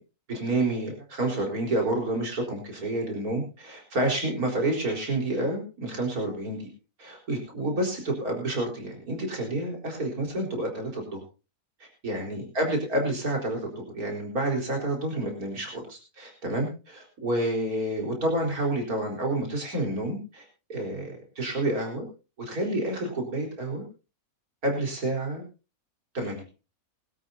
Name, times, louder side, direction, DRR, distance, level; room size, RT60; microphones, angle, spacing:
voice 1, 0.3-6.7 7.0-11.2 12.0-20.4 20.7-22.1 22.5-23.8 24.6-25.4 26.1-26.4, right 1 dB, 75° right, 1 dB, 4.8 m, -29 dB
22.0 x 13.0 x 2.7 m, 0.31 s
omnidirectional pair, 1.6 m